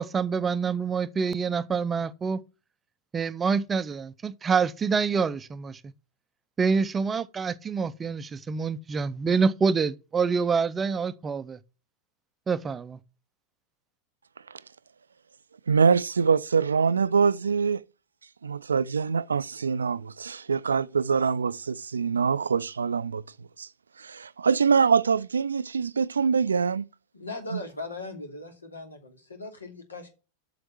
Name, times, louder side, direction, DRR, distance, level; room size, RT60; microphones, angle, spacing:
voice 1, 0.0-2.4 3.1-5.8 6.6-11.6 12.5-13.0, right 5 dB, 20° right, 0.6 m, -26 dB
voice 2, 15.7-17.8 18.4-23.2 23.6-23.7 24.0-26.9 27.5-27.6, right 5 dB, 75° right, 0.4 m, -24 dB
voice 3, 27.1-30.1, left 2 dB, 75° left, 2.7 m, -39 dB
7.8 x 6.6 x 7.6 m
figure-of-eight pair, 90°, 0 cm